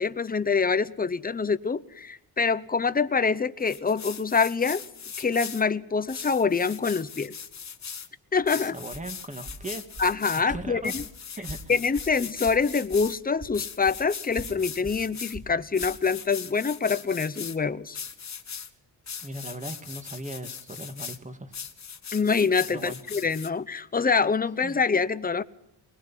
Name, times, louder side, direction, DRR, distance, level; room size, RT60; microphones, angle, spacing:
voice 1, 0.0-4.8 5.2-7.3 8.3-8.8 10.0-11.0 11.7-18.0 22.1-25.4, left 5 dB, 20° left, 0.8 m, -25 dB
sound 1, 3.6-5.6 6.1-8.1 8.5-10.4 10.8-13.2 13.5-15.4 15.7-17.6 17.9-18.7 19.1-21.2 21.5-23.5, left 7 dB, 40° left, 1.5 m, -39 dB
Walk footsteps, 8.3-13.1 13.4-16.0, right 1 dB, 35° right, 7.2 m, -44 dB
voice 2, 8.6-9.8 10.5-10.9 11.4-11.7 19.2-21.5 22.7-23.0 24.6-24.8, right 1 dB, 15° right, 2.1 m, -38 dB
22.5 x 21.0 x 5.8 m
wide cardioid pair, 135°, 43 cm